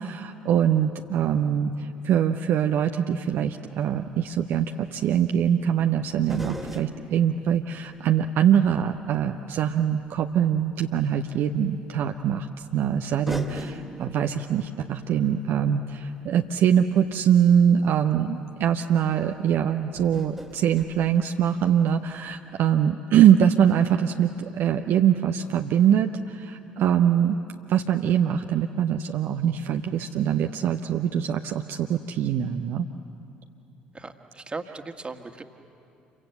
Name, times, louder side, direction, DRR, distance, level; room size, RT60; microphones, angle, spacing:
voice 1, 0.0-27.4 27.7-32.9, right 9 dB, 55° right, 5 dB, 0.8 m, -23 dB
sound 1, 4.1-4.2 6.2-9.2 9.7-9.8 11.3-11.4 12.6-12.7 13.3-17.4 18.3-18.4 18.7-18.9 20.0-21.9 22.1-22.2, equal, ahead, 2.3 m, -42 dB
voice 2, 33.9-35.4, right 3 dB, 20° right, 6 dB, 1.8 m, -37 dB
28.0 x 24.0 x 8.0 m, 2.8 s
figure-of-eight pair, 55°, 5 cm